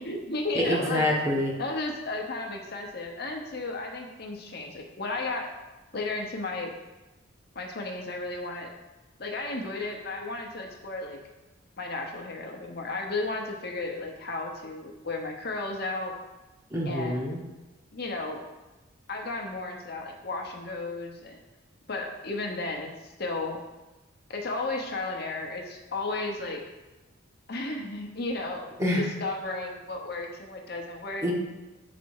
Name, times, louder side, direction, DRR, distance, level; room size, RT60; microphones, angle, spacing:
voice 1, 0.0-1.0 1.6-5.5 5.9-6.7 7.5-8.7 9.2-11.2 11.8-16.1 16.9-17.2 17.9-18.4 19.1-21.4 21.9-23.6 24.3-26.6 27.5-28.7 29.0-31.2, left 2 dB, 50° left, 1 dB, 0.9 m, -34 dB
voice 2, 0.5-1.6 16.7-17.4 28.8-29.0 31.2-31.3, left 1 dB, 15° right, -1 dB, 1.0 m, -26 dB
8.2 x 4.2 x 4.7 m, 1.1 s
head